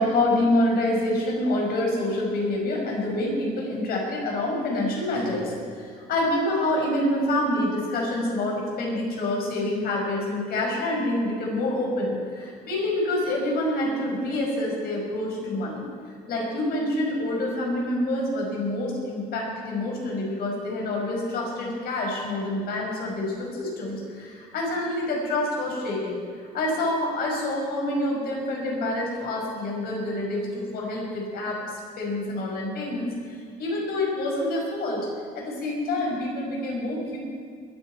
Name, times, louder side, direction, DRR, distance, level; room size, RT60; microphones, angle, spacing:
voice 1, 0.0-15.8 16.3-26.2 26.5-31.6 32.0-35.1 35.3-37.2, left 1 dB, 65° left, -1 dB, 5.3 m, -27 dB
21.0 x 13.5 x 4.6 m, 2.1 s
cardioid pair, 110°, 17 cm